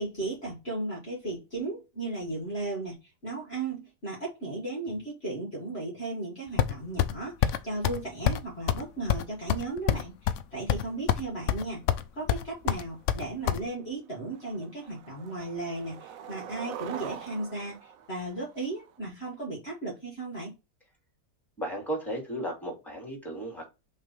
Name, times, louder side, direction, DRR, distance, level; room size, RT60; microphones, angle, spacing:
voice 1, 0.0-11.8 12.1-20.6, right 2 dB, 40° left, 2.0 m, -36 dB
sound 1, 6.6-7.1 7.4-7.6 7.8-8.0 8.3-8.4 8.7-8.8 9.1-10.4 10.7-11.2 11.5-12.0 12.3-13.6, left 10 dB, 70° left, 0.7 m, -26 dB
Skateboard, 13.2-13.3 13.7-14.0 14.3-19.0, right 8 dB, 65° right, 1.0 m, -43 dB
voice 2, 21.6-23.7, right 1 dB, ahead, 2.7 m, -34 dB
5.5 x 3.4 x 5.4 m
omnidirectional pair, 1.7 m